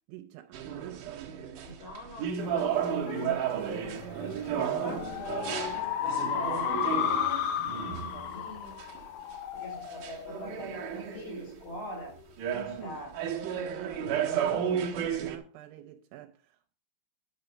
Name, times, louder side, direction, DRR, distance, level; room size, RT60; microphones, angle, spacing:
voice 1, 0.1-1.4 1.7-1.8 3.5-5.0 12.5-16.8, right 13 dB, 80° right, 3.1 m, -45 dB
sound 1, 0.5-9.0 9.9-11.7 12.1-15.4, right 8 dB, 65° right, 2.2 m, -33 dB
voice 2, 1.6-3.4 4.2-7.5 8.0-8.8 9.5-12.2 12.7-13.2, equal, 55° left, 5.8 m, -43 dB
sound 2, 2.4-11.3, left 9 dB, 80° left, 2.1 m, -34 dB
10.5 x 6.9 x 5.2 m
omnidirectional pair, 5.3 m